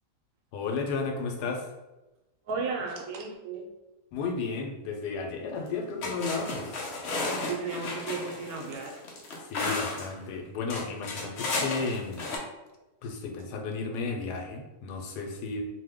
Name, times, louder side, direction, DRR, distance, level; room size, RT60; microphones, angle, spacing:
voice 1, 0.5-1.7 4.1-6.8 9.5-12.3 13.0-15.6, left 4 dB, 85° left, 2 dB, 1.2 m, -33 dB
voice 2, 2.5-3.7 7.5-9.0, right 4 dB, 70° right, 0 dB, 1.0 m, -34 dB
sound 1, 5.6-5.7 6.0-10.1 10.7-12.4, left 2 dB, 65° left, 0.7 m, -33 dB
2.7 x 2.1 x 3.5 m, 1.1 s
omnidirectional pair, 1.7 m